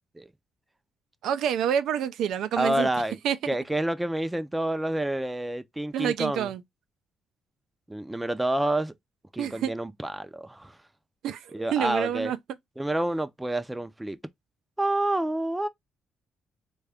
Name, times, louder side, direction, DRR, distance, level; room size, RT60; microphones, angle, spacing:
voice 1, 1.2-2.9 3.2-3.4 5.9-6.6 9.4-9.7 11.2-12.4, right 9 dB, 80° right, 0.3 m, -27 dB
voice 2, 2.6-3.2 3.5-6.5 7.9-8.9 9.3-10.8 11.5-12.3 12.8-14.2 14.8-15.7, right 1 dB, 10° right, 0.4 m, -28 dB
3.5 x 2.2 x 3.4 m
cardioid pair, 90°, 0 cm